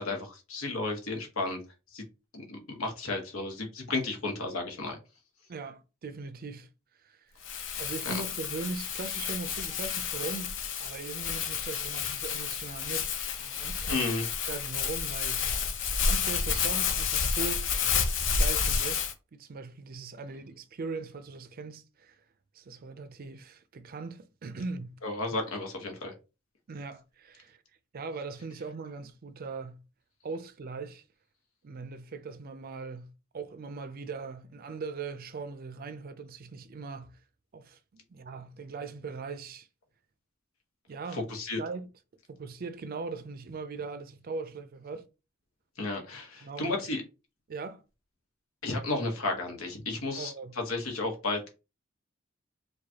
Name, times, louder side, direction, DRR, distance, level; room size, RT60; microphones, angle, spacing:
voice 1, 0.0-1.6 1.9-2.1 2.3-5.0 8.0-8.1 13.9-14.2 25.0-26.1 41.1-41.6 45.8-47.0 48.6-51.5, left 2 dB, 80° left, 1.1 m, -33 dB
voice 2, 5.5-6.7 7.0-7.2 7.8-13.1 13.4-14.1 14.5-15.5 16.1-17.6 18.4-19.0 19.3-22.2 22.5-25.0 26.7-27.6 27.9-29.8 30.2-31.0 31.6-37.2 37.5-39.7 40.9-41.3 41.6-41.9 42.3-45.0 46.4-46.8 47.5-47.8 50.2-50.5, right 4 dB, 45° right, 0.4 m, -40 dB
Crumpling crinkling, 7.4-19.1, left 6 dB, 60° left, 0.6 m, -30 dB
4.7 x 2.3 x 2.8 m
head